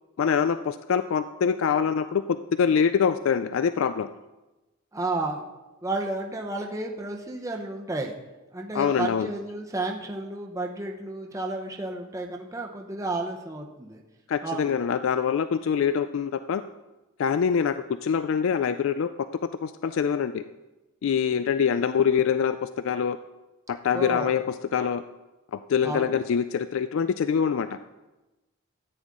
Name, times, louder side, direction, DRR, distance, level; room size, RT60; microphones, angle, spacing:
voice 1, 0.2-2.2 2.5-4.1 8.7-9.3 14.3-16.6 17.2-19.1 19.6-20.4 21.0-23.2 23.7-25.0 25.5-27.7, left 7 dB, 65° left, 12 dB, 0.3 m, -24 dB
voice 2, 4.9-5.4 5.8-8.1 8.5-14.0 14.4-14.7 23.9-24.3 25.8-26.2, right 2 dB, 15° right, 1 dB, 0.8 m, -32 dB
14.0 x 9.0 x 3.7 m, 1.1 s
head